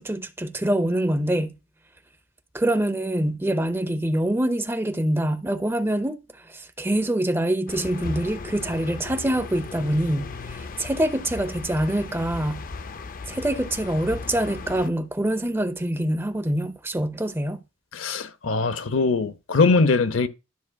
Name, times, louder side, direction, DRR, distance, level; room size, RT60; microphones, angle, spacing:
voice 1, 0.0-1.5 2.5-6.2 6.5-12.6 13.3-17.6, right 1 dB, 10° right, 0.6 m, -25 dB
sound 1, 7.7-14.9, left 4 dB, 45° left, 0.5 m, -36 dB
voice 2, 17.9-20.3, left 4 dB, 80° left, 0.7 m, -21 dB
12.5 x 6.2 x 2.3 m
head